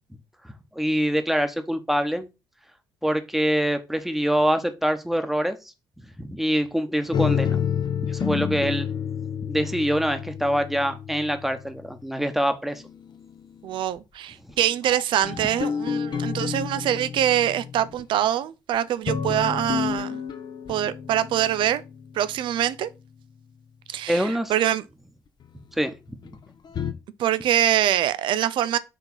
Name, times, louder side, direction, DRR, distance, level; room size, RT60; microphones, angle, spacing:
voice 1, 0.7-2.3 3.0-5.6 6.2-7.6 8.1-8.9 9.5-12.8 24.1-24.5 25.8-25.9, equal, ahead, 1.1 m, -24 dB
sound 1, 7.1-11.7 12.5-13.6 14.5-18.0 18.7-23.4 25.4-25.5 26.2-26.9, left 7 dB, 45° left, 0.8 m, -30 dB
voice 2, 13.6-20.2 20.7-21.8 22.1-22.9 23.9-24.8 27.2-28.8, right 11 dB, 50° right, 0.4 m, -24 dB
4.9 x 3.7 x 5.4 m
figure-of-eight pair, 45°, 11 cm